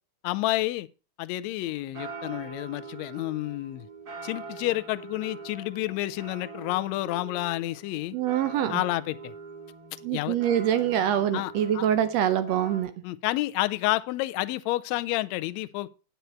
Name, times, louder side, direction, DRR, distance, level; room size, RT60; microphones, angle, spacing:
voice 1, 0.2-0.9 1.2-3.9 4.2-8.2 8.7-9.3 10.1-10.4 11.3-11.9 13.0-15.9, left 17 dB, 80° left, 1.6 m, -30 dB
sound 1, 1.6-12.8, right 4 dB, 35° right, 2.0 m, -43 dB
voice 2, 8.1-8.8 10.0-12.9, right 10 dB, 75° right, 1.6 m, -25 dB
9.3 x 8.1 x 4.3 m
omnidirectional pair, 3.6 m